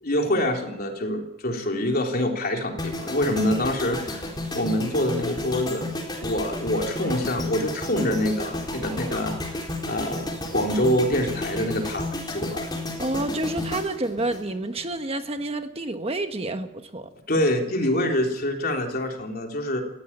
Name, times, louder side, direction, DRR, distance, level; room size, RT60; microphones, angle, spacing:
voice 1, 0.0-5.9 6.2-12.7 17.3-19.8, left 1 dB, 50° left, 2 dB, 3.5 m, -26 dB
sound 1, 2.8-15.0 15.2-15.5, left 1 dB, 20° left, 4.2 m, -32 dB
voice 2, 13.0-17.1, right 2 dB, 30° right, 7 dB, 1.3 m, -29 dB
19.0 x 16.0 x 8.8 m, 0.86 s
head